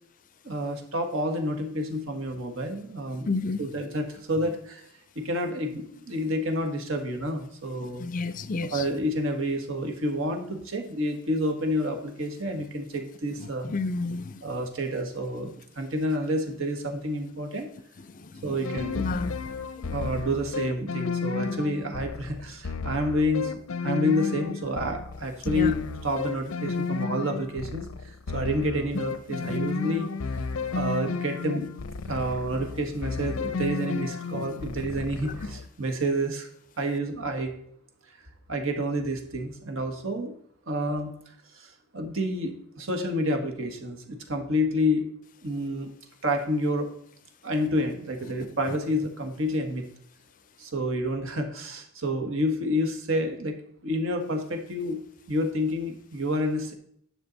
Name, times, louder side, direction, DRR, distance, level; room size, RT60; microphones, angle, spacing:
voice 1, 0.4-3.3 3.6-4.8 5.1-8.0 8.7-13.7 14.4-17.7 18.4-19.1 19.8-23.5 23.8-31.7 32.1-36.5 36.8-37.5 38.5-40.3 40.7-41.1 41.5-45.1 45.4-45.9 46.2-46.9 47.4-49.8 50.6-53.5 53.8-55.0 55.3-56.7, equal, 75° right, 1.6 m, -29 dB
voice 2, 3.3-3.6 8.0-8.8 13.6-14.4 18.1-18.5 18.9-19.4 25.4-25.7 29.4-29.6 34.3-34.5 35.2-35.3, left 3 dB, 40° left, 0.4 m, -31 dB
sound 1, 18.6-35.7, left 4 dB, 90° left, 0.6 m, -33 dB
11.0 x 6.4 x 4.1 m
head